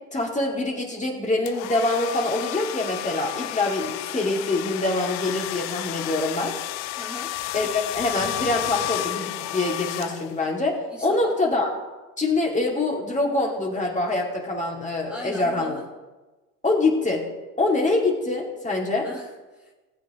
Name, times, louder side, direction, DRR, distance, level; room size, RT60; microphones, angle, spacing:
voice 1, 0.1-6.5 7.5-11.7 12.2-15.7 16.6-17.2 17.6-19.1, left 2 dB, 15° left, -1 dB, 2.4 m, -25 dB
sound 1, 1.5-10.6, left 16 dB, 40° left, 0.4 m, -32 dB
voice 2, 7.0-7.3 10.9-11.3 15.1-15.8 19.0-19.7, equal, ahead, -5 dB, 2.2 m, -39 dB
19.0 x 7.6 x 3.1 m, 1.2 s
hypercardioid pair, 85°, 46 cm